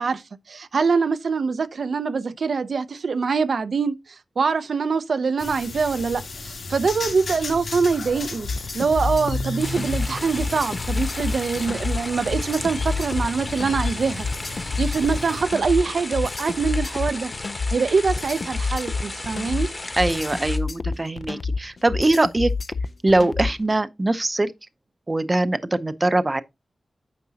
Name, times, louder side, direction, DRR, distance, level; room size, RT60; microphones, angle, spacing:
voice 1, 0.0-8.5 8.7-17.3 17.7-19.7, right 5 dB, 70° right, 0.5 m, -24 dB
sound 1, 5.4-15.4, left 3 dB, 75° left, 2.3 m, -34 dB
sound 2, 8.4-23.7, left 4 dB, 50° left, 0.4 m, -28 dB
sound 3, 9.6-20.6, left 2 dB, 25° left, 1.1 m, -35 dB
voice 2, 20.0-22.5 23.0-24.5 25.1-26.4, right 2 dB, 25° right, 0.6 m, -22 dB
9.5 x 6.0 x 2.8 m
wide cardioid pair, 120°, 0 cm